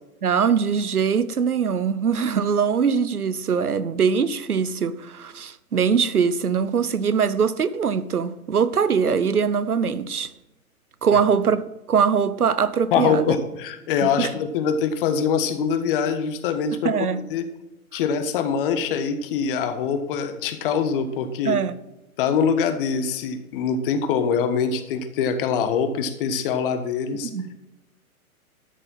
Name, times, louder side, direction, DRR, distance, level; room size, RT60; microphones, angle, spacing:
voice 1, 0.2-10.3 11.0-11.6 11.9-13.2 14.0-14.3 16.8-17.2 21.4-21.8 27.3-27.5, right 6 dB, 85° right, 0.9 m, -22 dB
voice 2, 12.9-16.9 17.3-17.5 17.9-21.6 22.2-27.3, left 6 dB, 40° left, 1.3 m, -24 dB
12.5 x 6.8 x 5.5 m
figure-of-eight pair, 120°, 43 cm